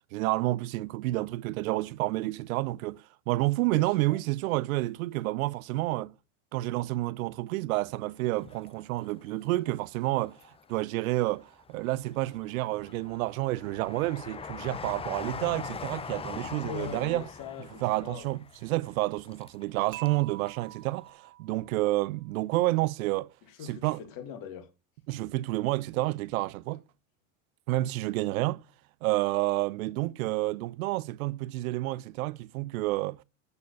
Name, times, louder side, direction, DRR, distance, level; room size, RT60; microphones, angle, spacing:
voice 1, 0.1-6.1 6.5-10.4 10.7-17.3 17.8-23.3 23.7-24.0 25.1-26.8 27.7-28.6 29.0-33.2, right 18 dB, 70° right, 0.7 m, -29 dB
voice 2, 3.7-4.2 16.6-18.3 23.4-24.7, left 8 dB, 50° left, 2.1 m, -42 dB
Train, 8.3-9.5 10.0-10.9 11.4-20.2 20.5-20.6, left 5 dB, 15° left, 0.5 m, -42 dB
Dishes pots and pans / Chink clink, 19.9-22.0, right 15 dB, 45° right, 1.4 m, -46 dB
12.0 x 4.3 x 6.8 m
hypercardioid pair, 95°, 43 cm